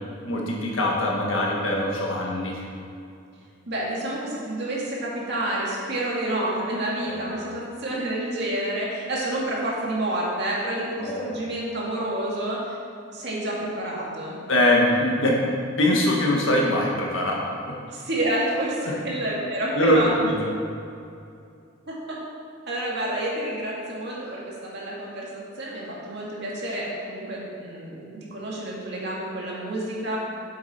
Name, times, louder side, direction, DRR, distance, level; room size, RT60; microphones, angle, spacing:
voice 1, 0.2-2.7 7.0-7.5 11.0-11.4 14.5-15.3 15.8-17.3 19.7-20.3, left 1 dB, 80° left, -2 dB, 1.7 m, -22 dB
voice 2, 3.7-12.8 13.1-14.4 17.9-20.1 21.9-22.2 22.7-30.2, right 1 dB, 55° right, -4 dB, 2.2 m, -29 dB
8.4 x 7.6 x 4.4 m, 2.5 s
head